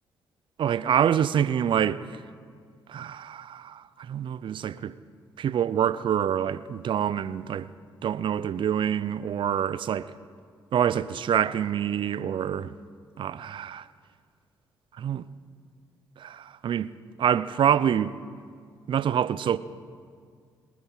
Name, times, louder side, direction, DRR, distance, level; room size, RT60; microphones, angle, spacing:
voice 1, 0.6-2.2 2.9-5.0 5.4-7.7 8.0-10.1 10.7-12.7 13.2-13.9 15.0-15.2 16.2-16.9 17.2-18.1 18.9-19.6, right 9 dB, 60° right, 0.5 m, -26 dB
22.5 x 9.6 x 5.7 m
supercardioid pair, 55°, 10 cm